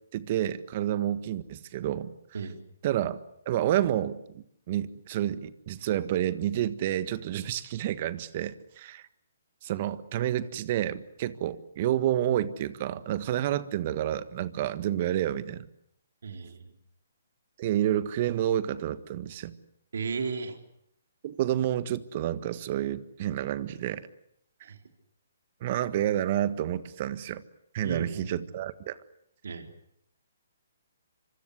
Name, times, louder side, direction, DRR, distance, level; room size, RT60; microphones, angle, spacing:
voice 1, 0.1-2.1 2.8-3.2 3.4-9.0 9.6-15.7 17.6-19.6 21.2-24.1 25.6-27.4 27.7-29.0, right 12 dB, 40° right, 14 dB, 1.6 m, -29 dB
voice 2, 16.2-16.7 19.9-20.6 24.6-24.8 27.8-28.4 29.4-29.7, right 5 dB, 75° right, 6 dB, 3.8 m, -34 dB
25.5 x 25.0 x 8.2 m, 0.72 s
hypercardioid pair, 145°, 0 cm